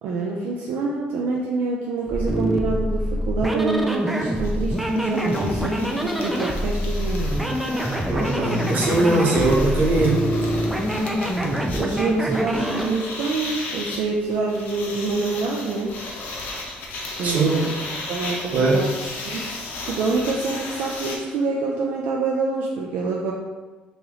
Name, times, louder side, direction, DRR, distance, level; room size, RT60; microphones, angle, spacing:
voice 1, 0.0-7.6 11.4-16.0 17.2-17.7 18.1-18.9 19.2-19.5 19.9-23.3, right 3 dB, 75° right, -2 dB, 0.4 m, -26 dB
sound 1, 2.1-12.9, equal, 5° right, 0.4 m, -25 dB
sound 2, 3.9-4.0 4.2-21.2, left 2 dB, 70° left, 0.7 m, -35 dB
voice 2, 8.0-10.3 17.2-17.5 18.5-18.8, right 2 dB, 50° right, -3 dB, 1.0 m, -20 dB
2.9 x 2.9 x 3.8 m, 1.3 s
cardioid pair, 145°, 3 cm